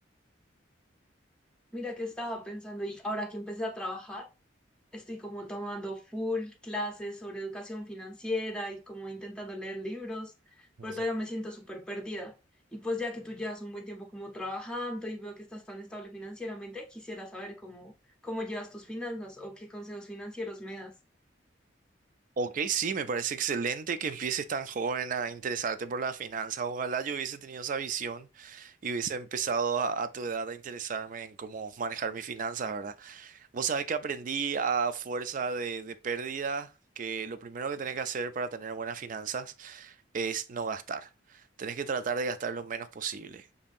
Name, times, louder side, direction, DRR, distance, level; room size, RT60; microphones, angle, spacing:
voice 1, 1.7-4.3 4.9-12.3 12.7-17.9 18.2-20.9, left 1 dB, 5° left, 0.7 m, -37 dB
voice 2, 22.4-43.5, right 5 dB, 45° right, 0.4 m, -33 dB
7.1 x 2.7 x 2.5 m
head